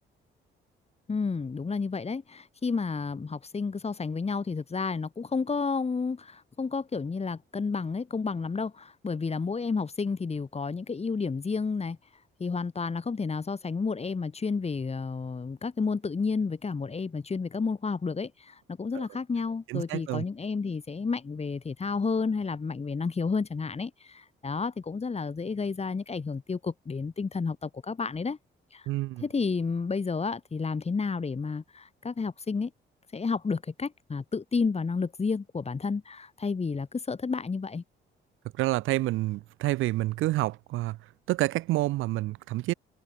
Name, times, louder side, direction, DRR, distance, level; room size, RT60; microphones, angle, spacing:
voice 1, 1.1-12.0 12.4-28.4 28.7-28.9 29.2-32.7 33.1-37.8, left 4 dB, 30° left, 4.8 m, -31 dB
voice 2, 19.7-20.2 28.9-29.2 38.6-41.0 41.3-42.7, right 17 dB, 90° right, 0.7 m, -28 dB
open air
cardioid pair, 90°, 20 cm